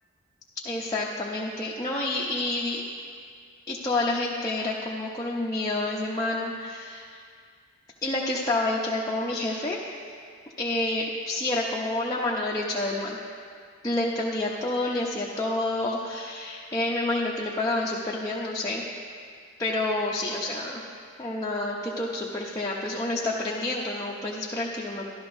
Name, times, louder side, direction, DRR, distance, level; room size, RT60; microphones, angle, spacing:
voice 1, 0.6-2.8 3.7-7.2 8.0-9.8 10.6-13.2 13.8-18.8 19.6-20.8 21.2-25.1, left 2 dB, 15° left, -5 dB, 0.7 m, -28 dB
13.5 x 11.5 x 2.6 m, 2.1 s
head